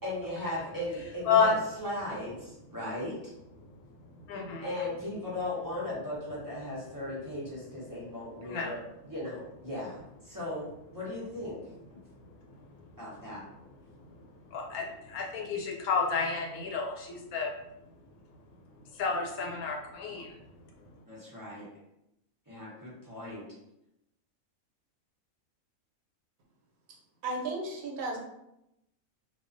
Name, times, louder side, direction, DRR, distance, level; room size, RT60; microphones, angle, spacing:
voice 1, 0.0-3.2 4.6-8.8 9.0-10.0 10.2-10.7 10.9-11.6 13.0-13.4 21.1-21.7 22.5-23.4, left 1 dB, 25° right, -8 dB, 0.4 m, -37 dB
voice 2, 4.3-4.6 8.5-8.7 14.5-17.5 19.0-20.3, left 5 dB, 85° left, 0 dB, 1.1 m, -30 dB
voice 3, 27.2-28.2, right 2 dB, 85° right, -1 dB, 1.1 m, -34 dB
2.3 x 2.3 x 2.5 m, 0.86 s
omnidirectional pair, 1.5 m